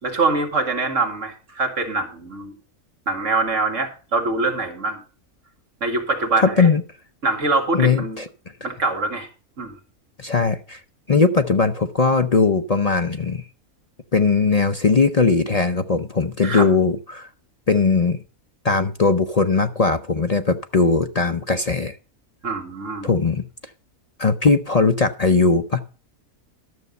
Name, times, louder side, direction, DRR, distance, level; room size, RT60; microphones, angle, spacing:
voice 1, 0.0-2.5 3.1-5.0 5.8-6.7 7.2-8.2 8.6-9.3 9.6-9.7 16.4-16.7 22.4-23.1, right 3 dB, 55° right, 3 dB, 2.4 m, -24 dB
voice 2, 6.4-6.8 7.7-8.3 10.2-10.8 11.1-13.4 14.1-17.3 17.7-18.2 18.6-22.0 23.0-23.4 24.2-25.8, left 4 dB, 45° left, 7 dB, 0.5 m, -19 dB
12.5 x 6.9 x 5.3 m, 0.37 s
omnidirectional pair, 1.5 m